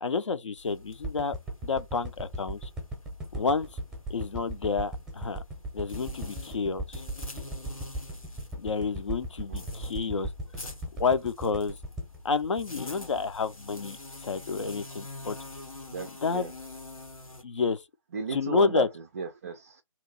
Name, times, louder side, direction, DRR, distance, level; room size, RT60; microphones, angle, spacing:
voice 1, 0.0-1.4 1.6-2.7 3.3-3.7 4.1-5.4 5.7-7.0 8.6-10.3 11.0-11.7 12.2-14.0 14.2-15.4 16.2-16.5 17.4-17.8 18.3-18.9, left 5 dB, 60° left, 0.6 m, -29 dB
sound 1, 0.6-17.4, left 2 dB, 90° left, 1.1 m, -46 dB
sound 2, 1.0-13.4 13.8-13.9, right 1 dB, 5° right, 0.7 m, -37 dB
voice 2, 15.9-16.5 18.1-19.8, right 5 dB, 25° right, 0.4 m, -35 dB
2.9 x 2.5 x 3.9 m
figure-of-eight pair, 145°, 17 cm